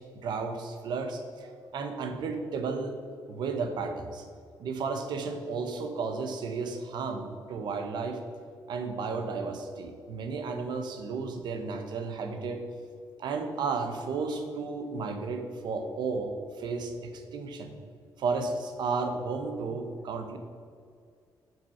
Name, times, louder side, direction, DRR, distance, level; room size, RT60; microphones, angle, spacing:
voice 1, 0.0-3.0 3.3-4.3 4.6-8.2 8.7-12.6 13.2-17.7 18.2-20.4, right 4 dB, 75° right, 6 dB, 1.1 m, -33 dB
8.9 x 6.0 x 5.7 m, 2.2 s
cardioid pair, 140°, 8 cm